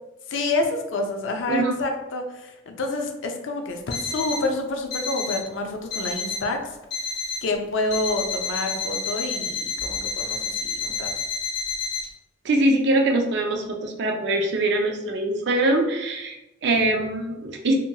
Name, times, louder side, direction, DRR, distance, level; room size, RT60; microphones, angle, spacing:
voice 1, 0.3-6.8 7.4-11.1, left 2 dB, 75° left, 3 dB, 0.4 m, -28 dB
Alarm, 3.9-4.5 4.9-5.5 5.9-6.5 6.9-7.5 7.9-12.0, left 4 dB, 55° left, 1.4 m, -29 dB
voice 2, 12.4-17.8, right 1 dB, 60° right, 3 dB, 0.4 m, -23 dB
2.8 x 2.7 x 2.2 m, 0.96 s
head